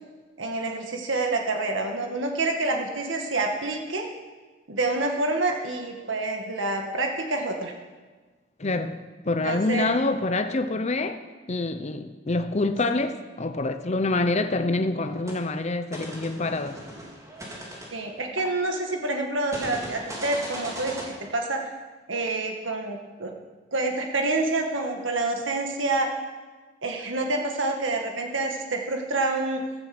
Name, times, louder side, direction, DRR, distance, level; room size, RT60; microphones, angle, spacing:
voice 1, 0.4-4.1 4.7-7.7 9.4-9.9 17.9-21.6 22.1-23.3 23.7-26.1 26.8-29.6, right 2 dB, 75° right, 1.9 m, -27 dB
voice 2, 8.6-11.2 11.5-16.8, left 2 dB, 35° left, 0.8 m, -26 dB
sound 1, 15.0-15.4 15.9-18.9 19.5-21.0, right 1 dB, 15° right, 3.6 m, -38 dB
15.0 x 14.0 x 6.1 m
head